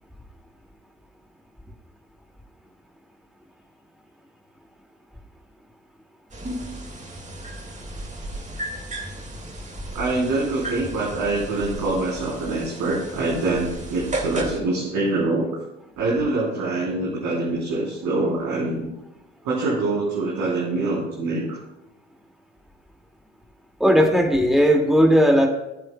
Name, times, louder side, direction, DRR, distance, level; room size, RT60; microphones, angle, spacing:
sound 1, 6.3-14.6, right 1 dB, 20° right, 1.9 m, -34 dB
voice 1, 9.9-15.5 16.0-18.9 19.4-21.6, right 2 dB, 60° right, -6 dB, 3.5 m, -25 dB
voice 2, 23.8-25.5, equal, ahead, 2 dB, 2.0 m, -16 dB
20.0 x 7.8 x 2.2 m, 0.95 s
figure-of-eight pair, 55°, 38 cm